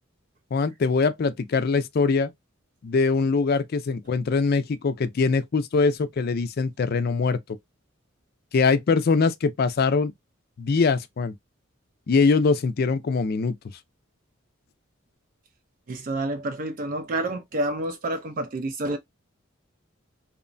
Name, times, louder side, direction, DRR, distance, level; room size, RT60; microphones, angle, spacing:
voice 1, 0.5-2.3 2.8-7.4 8.5-10.1 10.6-11.3 12.1-13.6, left 4 dB, 45° left, 0.4 m, -22 dB
voice 2, 15.9-19.0, right 1 dB, 40° right, 0.4 m, -29 dB
2.9 x 2.1 x 2.5 m
head